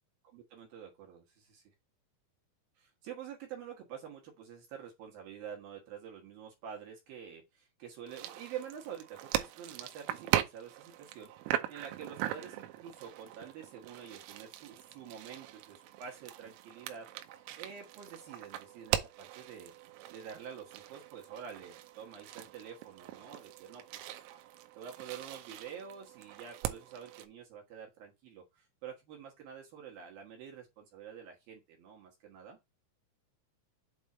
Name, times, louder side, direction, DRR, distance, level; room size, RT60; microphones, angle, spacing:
voice 1, 0.3-1.7 2.8-17.1 17.3-19.7 20.1-24.2 24.8-32.6, right 8 dB, 65° right, 2.5 m, -48 dB
sound 1, 8.1-27.3, right 13 dB, 90° right, 3.3 m, -40 dB
8.1 x 3.5 x 4.2 m
omnidirectional pair, 5.7 m